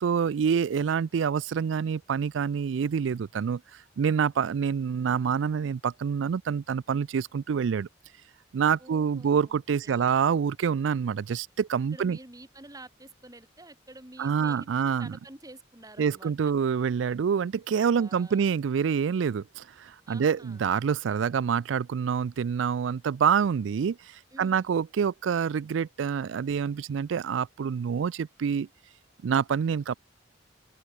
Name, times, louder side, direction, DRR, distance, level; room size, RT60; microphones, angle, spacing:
voice 1, 0.0-3.6 4.0-7.9 8.5-12.2 14.2-15.2 16.0-24.0 24.4-28.7 29.2-29.9, right 7 dB, 80° right, 0.4 m, -26 dB
voice 2, 8.8-9.6 9.8-10.1 11.9-16.3 18.0-18.4 20.1-20.6 24.3-24.7, right 2 dB, 20° right, 2.8 m, -49 dB
open air
head